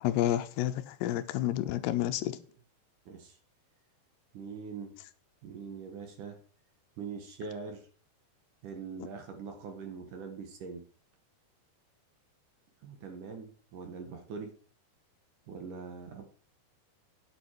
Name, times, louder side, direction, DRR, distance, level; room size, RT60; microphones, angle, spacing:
voice 1, 0.0-2.4, left 13 dB, 80° left, 2.8 m, -30 dB
voice 2, 3.1-3.4 4.3-4.9 5.4-6.4 7.0-7.9 8.6-10.8 12.8-14.5 15.5-16.2, right 5 dB, 60° right, 2.6 m, -42 dB
9.9 x 8.0 x 4.5 m
omnidirectional pair, 4.8 m